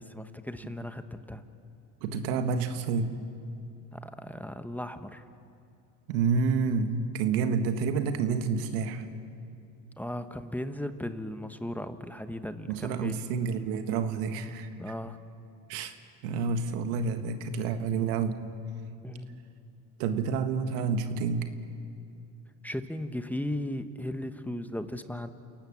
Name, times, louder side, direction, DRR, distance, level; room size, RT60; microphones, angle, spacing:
voice 1, 0.0-1.4 3.9-5.2 10.0-13.2 14.8-15.2 19.0-19.4 22.6-25.3, left 1 dB, 5° left, 9 dB, 1.2 m, -36 dB
voice 2, 2.0-3.1 6.1-9.0 12.7-14.9 15.7-16.0 16.2-18.4 20.0-21.5, right 5 dB, 90° right, 8 dB, 1.6 m, -29 dB
29.0 x 18.0 x 7.3 m, 2.6 s
supercardioid pair, 90°, 45 cm